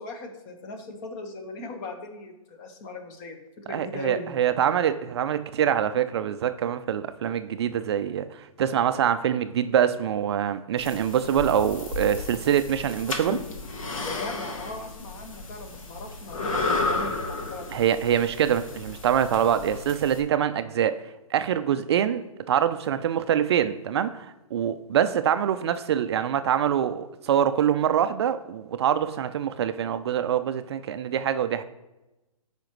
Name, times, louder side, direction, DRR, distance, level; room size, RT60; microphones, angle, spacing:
voice 1, 0.0-4.3 7.6-7.7 14.0-17.8, left 3 dB, 35° left, 1.2 m, -39 dB
voice 2, 3.7-13.4 17.7-21.0 21.3-31.6, right 9 dB, 45° right, 0.4 m, -25 dB
sound 1, 10.8-20.2, left 3 dB, 65° left, 1.5 m, -33 dB
13.0 x 4.9 x 3.1 m
hypercardioid pair, 140°, 18 cm